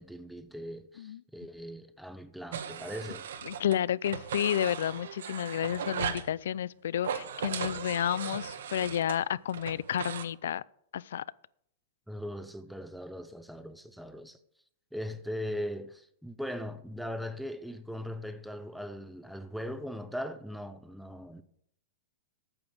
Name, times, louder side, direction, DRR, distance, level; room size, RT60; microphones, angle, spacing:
voice 1, 0.0-3.3 12.1-14.4 14.9-21.4, equal, ahead, 0.5 m, -39 dB
sound 1, 2.5-3.8 4.0-6.3 7.0-10.2, right 8 dB, 80° right, 1.1 m, -37 dB
voice 2, 3.5-10.6 10.9-11.2, left 10 dB, 75° left, 0.4 m, -31 dB
8.8 x 7.0 x 7.6 m
supercardioid pair, 170°, 0 cm